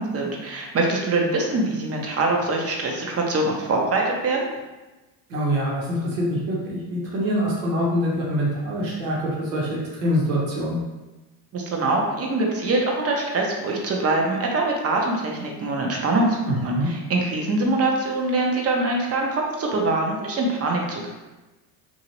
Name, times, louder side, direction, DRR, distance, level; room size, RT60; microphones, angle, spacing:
voice 1, 0.0-4.5 11.5-21.1, right 2 dB, 30° right, 0 dB, 0.7 m, -23 dB
voice 2, 5.3-10.8 16.5-16.9, equal, 85° right, -4 dB, 1.2 m, -25 dB
2.8 x 2.7 x 3.0 m, 1.1 s
supercardioid pair, 90°, 49 cm